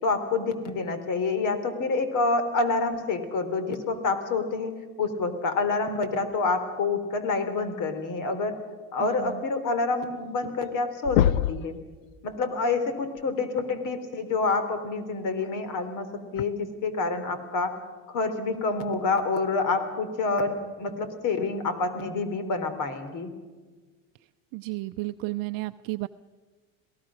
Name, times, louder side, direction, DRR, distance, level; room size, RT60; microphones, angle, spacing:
voice 1, 0.0-4.7 5.0-8.6 8.9-11.8 12.2-16.1 16.3-17.8 18.1-23.3, left 3 dB, 50° left, 10 dB, 3.5 m, -27 dB
sound 1, 10.1-10.2 10.5-10.8 11.0-11.7 13.4-13.5 15.4-15.5 16.4-16.5, left 12 dB, 85° left, 0.7 m, -23 dB
voice 2, 24.5-26.1, right 20 dB, 60° right, 9 dB, 0.6 m, -32 dB
27.0 x 18.0 x 6.3 m, 1.4 s
supercardioid pair, 105°, 39 cm